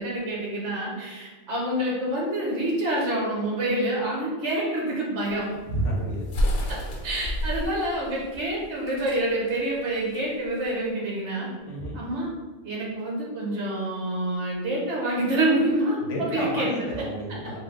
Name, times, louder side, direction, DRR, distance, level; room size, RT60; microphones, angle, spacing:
voice 1, 0.0-5.5 6.7-11.5 11.9-12.3 12.6-17.0, right 1 dB, 60° right, -3 dB, 1.3 m, -27 dB
sound 1, 5.3-10.9, equal, 85° left, 1.2 m, -30 dB
voice 2, 5.7-6.3 11.6-12.0 16.0-17.6, right 1 dB, 65° left, -2 dB, 1.2 m, -30 dB
3.4 x 2.6 x 3.6 m, 1.4 s
omnidirectional pair, 1.4 m